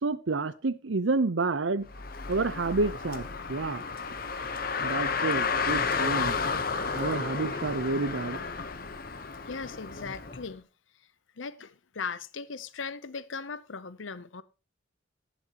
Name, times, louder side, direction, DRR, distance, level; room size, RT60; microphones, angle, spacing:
voice 1, 0.0-1.9 2.3-3.8 4.8-6.4 6.9-8.4, right 3 dB, 80° right, 0.7 m, -29 dB
Car, 1.9-10.4, left 5 dB, 50° left, 1.0 m, -32 dB
voice 2, 8.3-8.8 9.5-10.7 11.4-14.4, left 5 dB, 80° left, 0.8 m, -39 dB
18.5 x 7.2 x 3.0 m
head